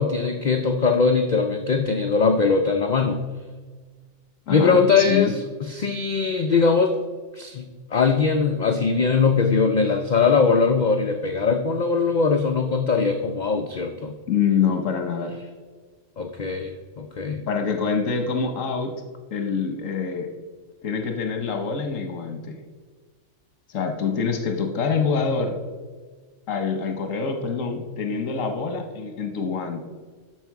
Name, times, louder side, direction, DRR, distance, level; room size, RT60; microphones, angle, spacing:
voice 1, 0.0-3.2 4.5-5.4 5.7-6.9 7.3-14.1 16.2-17.4, left 5 dB, 50° left, 6 dB, 0.5 m, -21 dB
voice 2, 4.5-5.4 14.3-15.4 17.5-19.0 19.3-20.3 20.8-22.6 23.7-25.6 26.5-29.8, left 6 dB, 85° left, 5 dB, 1.3 m, -25 dB
10.5 x 6.7 x 4.7 m, 1.4 s
omnidirectional pair, 1.3 m